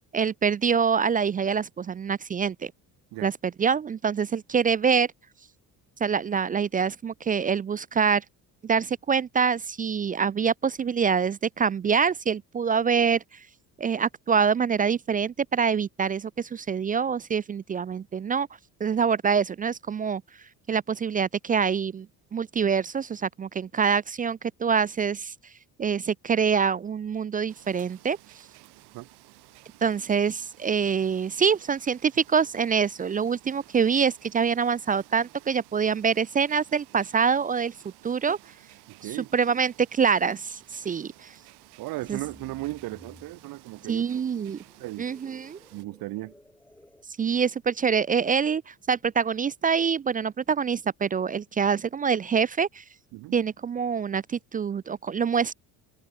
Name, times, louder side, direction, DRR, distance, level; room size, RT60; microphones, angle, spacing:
voice 1, 0.1-2.7 3.2-5.1 6.0-8.2 8.6-13.4 13.8-18.5 18.8-20.2 20.7-22.1 22.3-25.3 25.8-28.2 29.8-37.7 38.0-38.4 39.0-41.3 42.1-42.2 43.9-44.6 45.0-45.6 47.2-52.8 53.3-55.5, right 6 dB, 25° right, 0.3 m, -25 dB
sound 1, 27.5-45.8, right 25 dB, 90° right, 3.2 m, -54 dB
voice 2, 38.9-39.3 41.8-44.2 44.8-45.1 45.7-46.3 53.1-53.4, right 19 dB, 60° right, 0.6 m, -36 dB
sound 2, 41.9-47.0, left 1 dB, 5° left, 7.1 m, -56 dB
cardioid pair, 110°, 38 cm